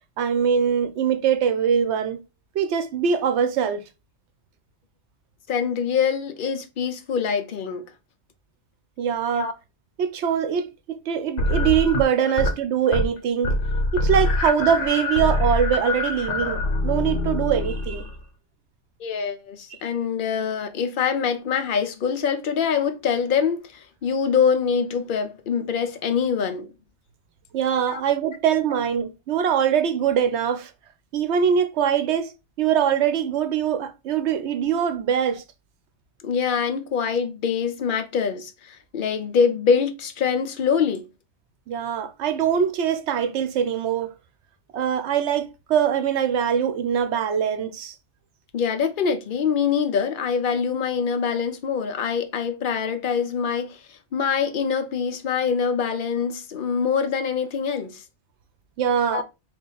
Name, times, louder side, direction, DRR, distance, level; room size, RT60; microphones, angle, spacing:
voice 1, 0.2-2.2 2.6-3.8 9.0-9.5 10.0-13.6 13.9-18.1 27.5-30.7 31.1-32.3 32.6-35.4 41.7-44.1 44.7-47.9 58.8-59.2, right 8 dB, 80° right, 0.9 m, -23 dB
voice 2, 5.5-7.9 9.4-9.5 19.0-26.7 27.9-28.0 36.2-41.1 48.5-53.8 54.1-58.0 59.1-59.2, left 6 dB, 55° left, 0.7 m, -24 dB
sound 1, 11.4-12.6 12.9-13.2 13.4-18.2, left 1 dB, 80° left, 1.1 m, -24 dB
3.0 x 2.5 x 3.8 m
omnidirectional pair, 1.2 m